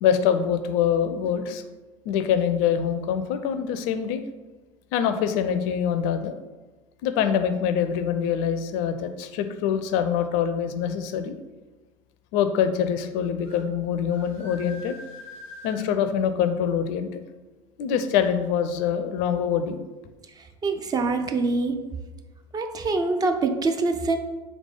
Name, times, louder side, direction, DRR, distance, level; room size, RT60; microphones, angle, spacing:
voice 1, 0.0-1.6 2.1-4.2 4.9-6.4 7.0-11.4 12.3-15.0 15.6-17.2 17.8-19.8, left 8 dB, 50° left, 9 dB, 0.4 m, -24 dB
sound 1, 13.4-13.6 14.1-15.9, left 2 dB, 85° right, 1.4 m, -43 dB
voice 2, 20.6-21.8 22.5-24.2, right 3 dB, 25° right, 6 dB, 0.4 m, -24 dB
3.6 x 3.2 x 3.6 m, 1.2 s
figure-of-eight pair, 70°, 17 cm